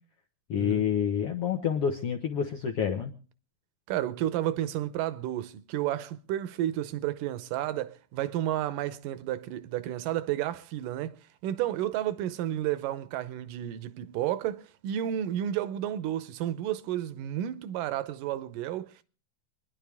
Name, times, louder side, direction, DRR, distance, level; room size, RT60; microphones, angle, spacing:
voice 1, 0.5-3.1, left 8 dB, 75° left, 1.4 m, -28 dB
voice 2, 3.9-11.2 11.4-19.0, right 12 dB, 75° right, 2.2 m, -31 dB
27.0 x 10.5 x 3.5 m
omnidirectional pair, 4.2 m